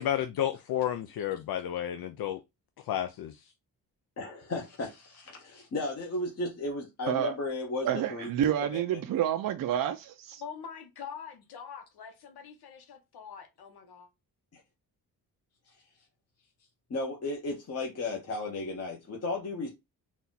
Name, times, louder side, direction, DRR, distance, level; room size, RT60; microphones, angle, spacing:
voice 1, 0.0-2.4 2.8-3.5, left 11 dB, 70° left, 0.5 m, -31 dB
voice 2, 4.2-8.3 8.7-9.0 14.5-14.6 15.7-15.8 16.9-19.7, left 2 dB, 40° left, 1.0 m, -35 dB
voice 3, 7.8-10.4, right 10 dB, 60° right, 0.5 m, -29 dB
voice 4, 10.4-14.1, left 7 dB, 90° left, 1.0 m, -44 dB
4.1 x 2.4 x 3.9 m
wide cardioid pair, 135°, 37 cm